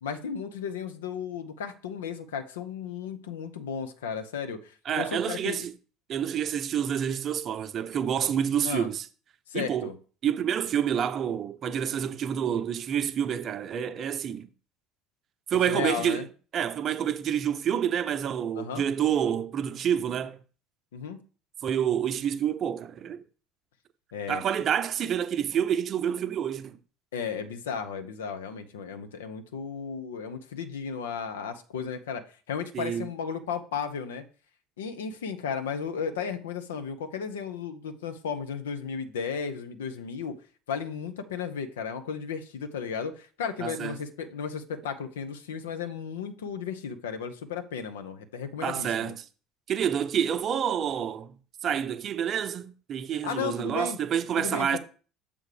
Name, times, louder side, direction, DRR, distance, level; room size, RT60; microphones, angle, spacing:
voice 1, 0.0-5.7 8.6-8.9 9.5-10.0 15.7-16.3 18.5-18.8 20.9-21.2 24.1-24.4 27.1-34.2 34.8-40.4 40.7-49.2 53.2-54.0 54.4-54.8, left 6 dB, 85° left, 0.8 m, -34 dB
voice 2, 4.9-5.7 6.1-9.0 9.5-9.9 10.2-14.5 15.5-16.3 16.5-20.4 21.6-23.2 24.3-26.8 32.7-33.1 43.6-44.0 48.6-49.3 49.7-51.3 51.6-54.8, right 9 dB, 45° right, 0.7 m, -28 dB
6.9 x 3.6 x 4.9 m
hypercardioid pair, 70°, 0 cm